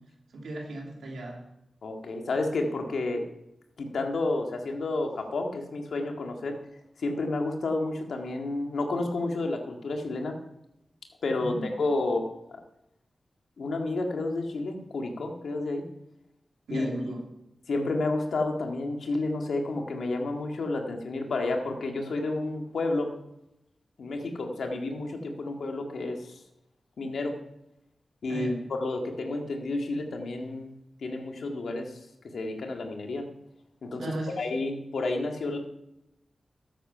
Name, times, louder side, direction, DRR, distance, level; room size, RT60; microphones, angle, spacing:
voice 1, 0.3-1.4 11.4-11.7 16.7-17.2 28.3-28.6 34.0-34.4, right 2 dB, 90° right, 0 dB, 2.8 m, -35 dB
voice 2, 1.8-3.3 3.8-6.6 7.0-10.4 11.2-12.6 13.6-15.8 16.7-16.9 17.7-23.1 24.0-26.4 27.0-27.4 28.2-30.7 31.0-31.9 32.3-33.3 33.8-35.6, left 2 dB, 80° left, 3 dB, 1.9 m, -30 dB
12.5 x 8.2 x 5.6 m, 0.85 s
cardioid pair, 45°, 0 cm